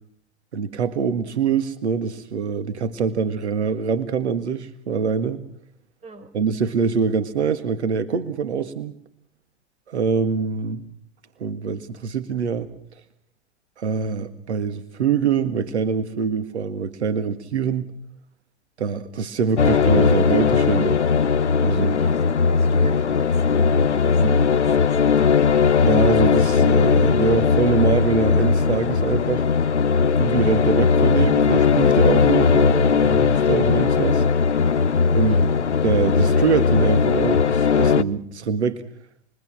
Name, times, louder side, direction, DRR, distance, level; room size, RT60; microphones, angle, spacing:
voice 1, 0.5-5.4 6.3-8.9 9.9-10.8 11.4-12.7 13.8-17.9 18.8-21.0 21.6-22.0 24.2-24.4 25.9-29.4 30.2-34.2 35.1-35.4 35.8-38.8, right 6 dB, 80° right, 11 dB, 1.8 m, -24 dB
sound 1, 19.6-38.0, left 5 dB, 90° left, 0.9 m, -18 dB
voice 2, 21.9-25.1 35.1-35.4, right 3 dB, 20° right, 10 dB, 4.9 m, -39 dB
28.0 x 23.0 x 6.2 m, 0.64 s
hypercardioid pair, 100°, 34 cm